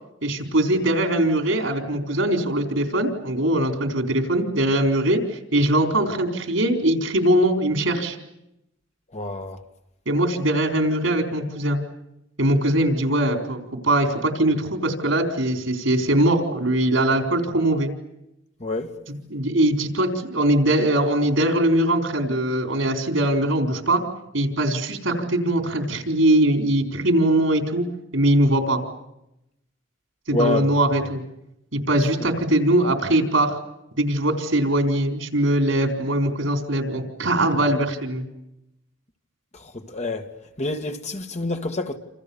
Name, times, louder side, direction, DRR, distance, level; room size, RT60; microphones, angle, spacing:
voice 1, 0.2-8.2 10.1-11.8 12.4-17.9 19.3-24.0 24.3-27.8 28.1-28.8 30.3-31.2 31.7-33.6 34.0-38.3, right 1 dB, 85° right, 4.4 m, -21 dB
voice 2, 9.1-9.6 18.6-19.0 30.3-30.7 39.5-40.3 40.6-42.0, left 2 dB, 35° left, 2.0 m, -27 dB
28.0 x 28.0 x 7.2 m
head